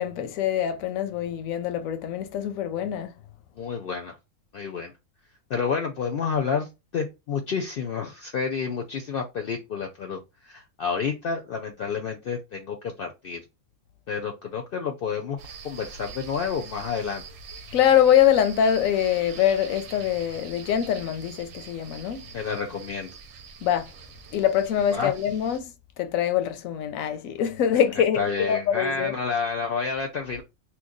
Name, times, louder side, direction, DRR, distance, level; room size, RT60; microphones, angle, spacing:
voice 1, 0.0-3.1 17.7-22.3 23.6-23.9 24.3-25.7 26.0-29.1, left 9 dB, 85° left, 1.0 m, -24 dB
voice 2, 3.5-4.2 4.5-4.9 5.5-13.4 14.1-15.4 15.6-17.2 22.3-23.2 24.9-25.1 28.0-30.4, left 5 dB, 60° left, 0.6 m, -29 dB
sound 1, 15.4-25.6, right 5 dB, 85° right, 1.0 m, -44 dB
2.9 x 2.2 x 3.8 m
omnidirectional pair, 1.4 m